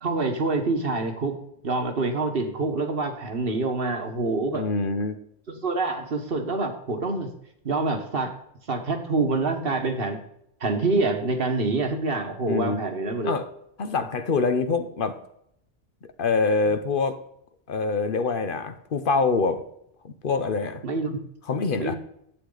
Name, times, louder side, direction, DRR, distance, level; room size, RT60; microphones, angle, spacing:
voice 1, 0.0-1.4 1.6-4.6 5.5-7.3 7.6-8.3 8.7-10.2 10.6-13.4 20.8-21.2 21.8-22.0, right 3 dB, 60° right, 5 dB, 1.5 m, -26 dB
voice 2, 4.5-5.2 12.5-12.9 13.2-13.5 13.8-15.2 16.2-17.2 17.7-19.6 20.0-20.8 21.5-21.9, left 4 dB, 55° left, 10 dB, 0.9 m, -25 dB
11.0 x 8.2 x 3.9 m, 0.74 s
omnidirectional pair, 1.1 m